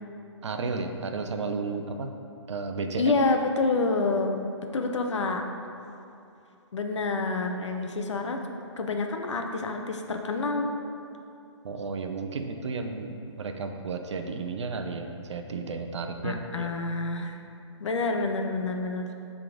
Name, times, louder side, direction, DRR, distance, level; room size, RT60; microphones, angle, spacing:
voice 1, 0.4-2.1 2.5-3.1 11.6-16.7, right 4 dB, 70° right, 5 dB, 0.7 m, -33 dB
voice 2, 3.0-4.4 4.7-5.4 6.7-8.4 8.8-10.7 16.2-17.4 17.8-19.1, left 3 dB, 75° left, 4 dB, 0.8 m, -27 dB
7.6 x 3.8 x 4.9 m, 2.7 s
hypercardioid pair, 150°, 15 cm